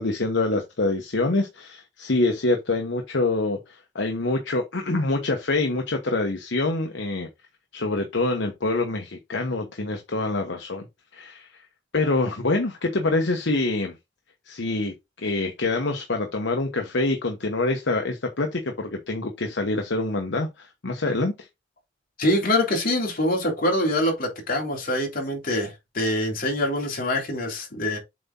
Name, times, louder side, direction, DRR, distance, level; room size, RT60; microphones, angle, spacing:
voice 1, 0.0-7.3 7.7-10.9 11.1-11.6 11.9-14.0 14.5-21.5, left 2 dB, 70° left, 1.1 m, -26 dB
voice 2, 22.2-28.0, left 1 dB, 50° left, 3.2 m, -24 dB
7.6 x 4.2 x 3.8 m
head